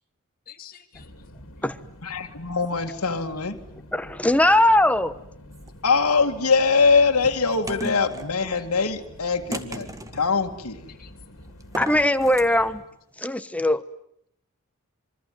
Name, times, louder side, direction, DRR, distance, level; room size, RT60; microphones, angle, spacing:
voice 1, 0.5-1.2 2.2-2.4 3.4-3.5 8.5-8.7 10.9-11.1 12.5-12.6, left 10 dB, 40° left, 4 dB, 2.8 m, -48 dB
sound 1, 0.9-12.8, left 1 dB, 65° left, 3.1 m, -47 dB
voice 2, 2.0-3.6 5.8-10.9, left 4 dB, 85° left, 3 dB, 2.1 m, -22 dB
voice 3, 3.9-5.2 11.8-12.8 13.2-13.8, left 1 dB, 5° left, 12 dB, 1.0 m, -20 dB
sound 2, 5.5-6.1 6.8-8.3 9.5-10.3 11.6-12.5, right 1 dB, 15° right, 1.8 m, -36 dB
27.0 x 24.0 x 9.4 m, 0.73 s
head